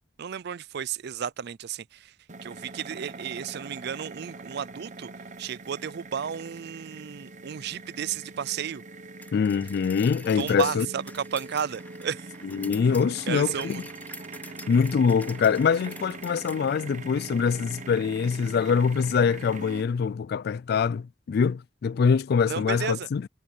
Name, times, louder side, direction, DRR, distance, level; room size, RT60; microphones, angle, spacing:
voice 1, 0.2-2.1 2.4-5.1 5.4-8.8 10.4-12.3 13.3-13.8 22.5-23.1, right 8 dB, 60° right, 0.4 m, -33 dB
sound 1, 2.3-19.8, right 3 dB, 40° right, 1.0 m, -42 dB
sound 2, 9.2-16.6, left 2 dB, 10° left, 2.9 m, -47 dB
voice 2, 9.3-10.9 12.4-13.8 14.7-23.3, left 6 dB, 55° left, 0.3 m, -24 dB
head